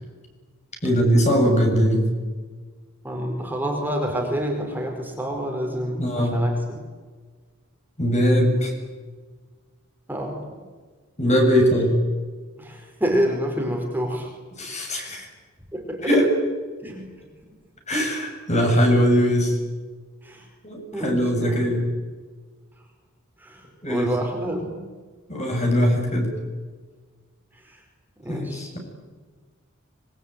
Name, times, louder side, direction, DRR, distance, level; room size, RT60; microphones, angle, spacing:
voice 1, 0.8-2.1 6.0-6.4 8.0-8.7 11.2-12.0 14.6-15.3 16.0-16.3 17.9-19.6 20.6-21.9 23.8-24.1 25.3-26.4 28.3-28.8, equal, 35° left, 2 dB, 7.9 m, -21 dB
voice 2, 3.0-6.8 10.1-10.4 12.6-14.3 15.7-16.1 16.8-17.0 20.2-20.4 20.9-21.6 23.4-24.8 28.2-28.7, equal, 10° right, 1 dB, 4.8 m, -28 dB
25.5 x 23.5 x 9.3 m, 1.4 s
head